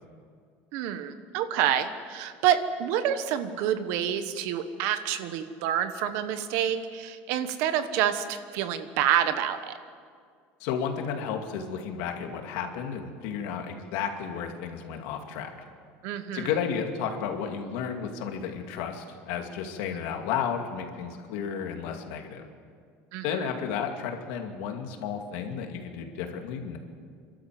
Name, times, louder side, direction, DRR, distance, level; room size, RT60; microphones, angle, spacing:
voice 1, 0.7-9.7 16.0-16.5 23.1-23.5, right 10 dB, 60° right, 10 dB, 1.2 m, -28 dB
voice 2, 10.6-15.5 16.3-22.5 23.2-26.8, left 7 dB, 70° left, 4 dB, 2.4 m, -32 dB
28.5 x 12.5 x 7.7 m, 2.1 s
cardioid pair, 180°, 5 cm